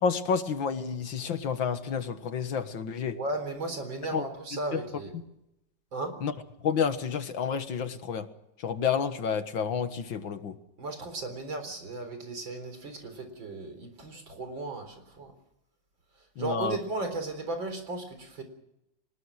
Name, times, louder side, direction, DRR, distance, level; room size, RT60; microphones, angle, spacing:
voice 1, 0.0-3.2 4.1-4.2 4.7-4.8 6.2-6.3 6.6-8.3 8.6-10.5 16.4-16.8, left 6 dB, 75° left, 9 dB, 2.3 m, -29 dB
voice 2, 3.1-5.1 5.9-6.1 10.8-15.3 16.4-18.4, right 2 dB, 75° right, 7 dB, 4.7 m, -35 dB
23.5 x 20.5 x 6.4 m, 0.85 s
omnidirectional pair, 2.1 m